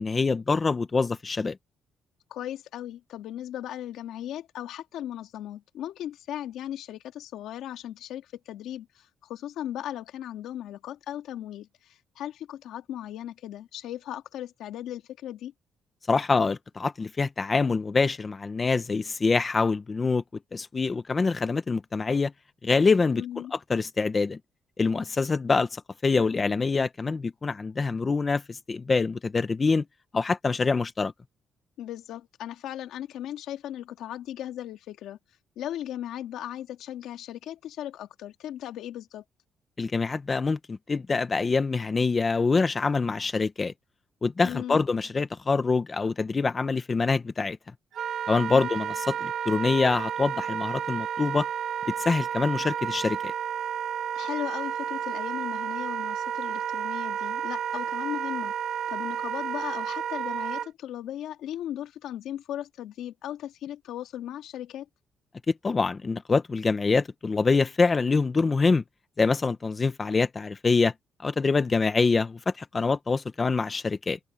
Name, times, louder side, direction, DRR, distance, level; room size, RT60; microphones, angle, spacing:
voice 1, 0.0-1.6 16.1-20.2 20.5-22.3 22.6-23.2 23.5-24.4 24.8-29.8 30.1-31.1 39.8-43.7 44.2-47.6 48.3-51.5 52.0-53.3 65.5-68.8 69.2-70.9 71.2-74.2, left 4 dB, 20° left, 0.8 m, -25 dB
voice 2, 2.3-15.5 23.1-23.5 31.8-35.2 35.6-39.2 44.4-44.8 48.5-48.7 54.1-58.5 58.9-64.9, left 11 dB, 85° left, 2.1 m, -37 dB
Wind instrument woodwind instrument, 47.9-60.7, right 8 dB, 55° right, 1.7 m, -31 dB
cardioid pair, 165°, 0 cm